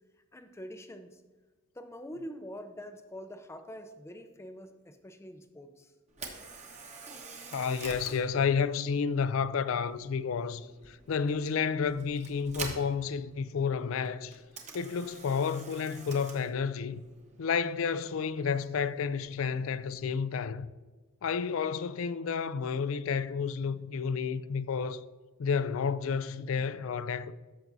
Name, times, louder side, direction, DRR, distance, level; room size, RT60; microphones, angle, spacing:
voice 1, 0.3-1.2 1.7-5.9, equal, 10° left, 0.5 m, -45 dB
Camera, 6.1-20.2, right 4 dB, 30° right, 1.1 m, -48 dB
voice 2, 7.5-14.4 14.7-17.0 17.4-20.7 21.2-25.0 25.4-27.3, left 6 dB, 70° left, 0.4 m, -31 dB
14.0 x 5.9 x 2.7 m
head